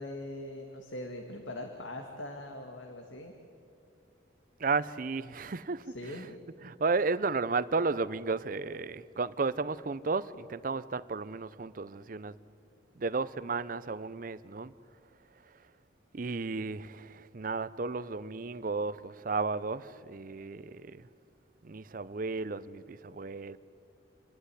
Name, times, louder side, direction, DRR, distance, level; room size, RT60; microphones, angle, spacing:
voice 1, 0.0-3.3 5.9-6.3, left 1 dB, 90° left, 4 dB, 1.7 m, -41 dB
voice 2, 4.6-6.3 6.6-12.4 13.0-14.7 16.1-21.1 21.6-23.6, right 4 dB, 45° right, 17 dB, 0.5 m, -33 dB
28.0 x 11.5 x 9.7 m, 2.4 s
head